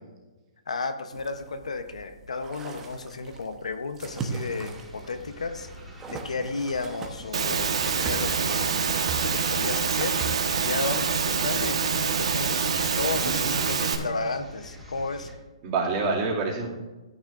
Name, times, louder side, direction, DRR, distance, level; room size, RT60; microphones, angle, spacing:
voice 1, 0.7-5.7 6.1-8.7 9.2-10.2 10.6-15.3, left 3 dB, 90° left, 9 dB, 0.9 m, -33 dB
sound 1, 1.1-11.0, right 4 dB, 15° right, 1.0 m, -40 dB
sound 2, 4.0-15.3, equal, ahead, 1.9 m, -45 dB
Engine / Mechanisms, 7.3-14.0, right 6 dB, 70° right, 1.3 m, -26 dB
voice 2, 13.2-14.1 15.6-16.7, right 4 dB, 35° right, -3 dB, 2.4 m, -28 dB
13.5 x 9.7 x 2.5 m, 1.2 s
hypercardioid pair, 145°, 3 cm